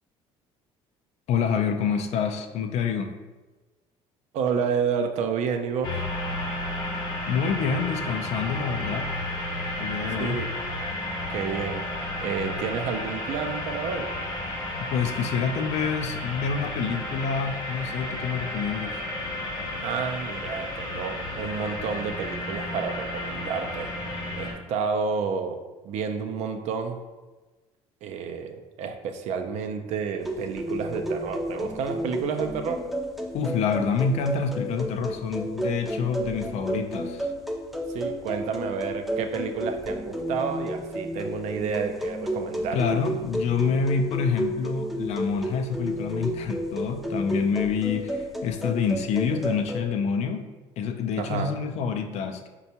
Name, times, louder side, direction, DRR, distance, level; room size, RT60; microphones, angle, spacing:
voice 1, 1.3-3.1 7.3-9.1 9.8-10.4 14.9-19.0 33.3-37.3 42.7-50.5 50.8-52.5, left 6 dB, 60° left, 6 dB, 0.4 m, -27 dB
voice 2, 4.3-6.0 10.2-10.5 11.3-11.8 12.2-14.1 19.8-23.9 24.4-27.0 28.0-32.8 37.9-42.8 51.2-51.6, right 6 dB, 65° right, 6 dB, 0.4 m, -30 dB
sound 1, 5.8-24.5, left 1 dB, 35° left, 0.7 m, -32 dB
sound 2, 30.2-49.8, equal, ahead, 0.4 m, -32 dB
4.2 x 2.2 x 2.8 m, 1.2 s
supercardioid pair, 80°, 13 cm